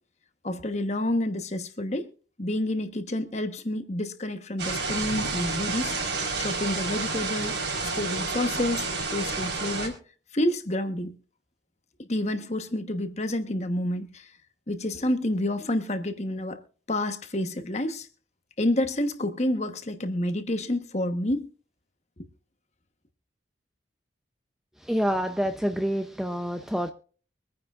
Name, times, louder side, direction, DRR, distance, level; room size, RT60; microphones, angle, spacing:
voice 1, 0.4-2.1 2.4-6.0 6.4-7.7 7.9-9.9 10.3-11.1 12.0-14.3 14.7-16.6 16.9-18.1 18.6-21.5, left 1 dB, 35° left, 1.1 m, -29 dB
sound 1, 4.6-9.9, right 3 dB, 70° right, 4.2 m, -30 dB
voice 2, 24.8-26.9, equal, ahead, 0.6 m, -27 dB
24.0 x 9.6 x 2.5 m
head